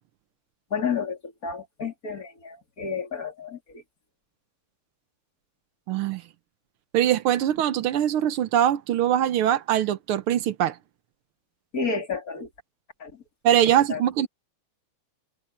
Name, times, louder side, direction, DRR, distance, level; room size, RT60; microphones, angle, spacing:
voice 1, 0.7-3.8 11.7-12.5 13.0-13.1 13.9-14.0, left 5 dB, 40° left, 3.5 m, -31 dB
voice 2, 5.9-6.2 6.9-10.7 13.4-14.3, right 11 dB, 85° right, 1.8 m, -22 dB
omnidirectional pair, 2.3 m